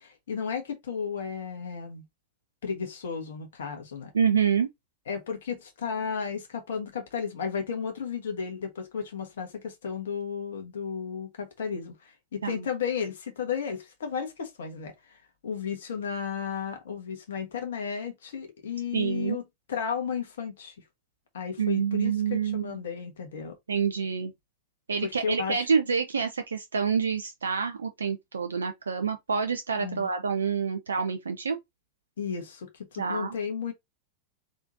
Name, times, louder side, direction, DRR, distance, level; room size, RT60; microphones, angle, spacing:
voice 1, 0.0-2.0 2.6-4.1 5.1-19.4 19.7-20.7 21.3-23.6 25.0-25.7 29.8-30.1 32.2-33.7, left 6 dB, 60° left, 1.3 m, -34 dB
voice 2, 4.1-4.7 12.4-12.6 18.9-19.4 21.6-22.7 23.7-24.3 24.9-31.6 33.0-33.3, right 6 dB, 70° right, 0.5 m, -27 dB
4.2 x 3.6 x 2.6 m
figure-of-eight pair, 90°, 0 cm